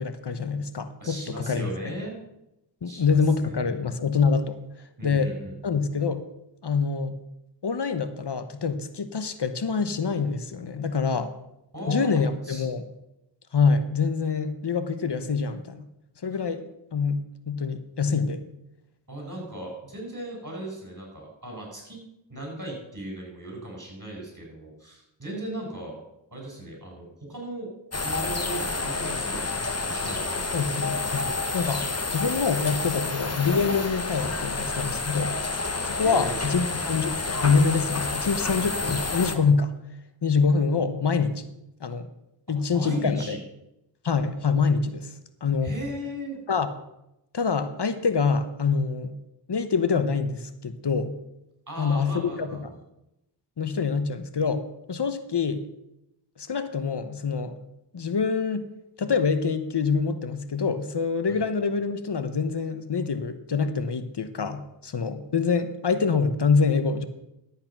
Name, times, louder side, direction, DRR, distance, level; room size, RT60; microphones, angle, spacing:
voice 1, 0.0-1.7 2.8-4.6 5.0-5.3 5.6-6.2 6.6-7.2 7.6-11.3 11.9-12.8 13.5-15.9 16.2-16.6 16.9-18.4 30.5-31.3 31.5-31.8 32.1-35.4 36.0-39.7 40.2-41.5 41.8-42.1 42.5-43.4 44.0-45.1 45.4-45.7 46.5-46.7 47.3-49.1 49.5-51.1 51.8-52.5 53.6-55.6 56.4-57.5 57.9-58.7 59.0-67.1, left 5 dB, 65° left, 11 dB, 1.0 m, -25 dB
voice 2, 1.0-2.2 2.8-3.9 5.0-5.7 11.7-12.7 16.3-16.4 19.1-22.0 22.3-26.0 26.3-27.7 28.0-30.8 35.7-36.6 42.7-43.4 45.6-46.4 51.7-52.8 61.3-61.4, right 1 dB, 45° right, -1 dB, 6.0 m, -37 dB
sound 1, 27.9-39.4, left 3 dB, 35° left, 1.2 m, -29 dB
12.0 x 8.6 x 5.9 m, 0.86 s
wide cardioid pair, 50°, 44 cm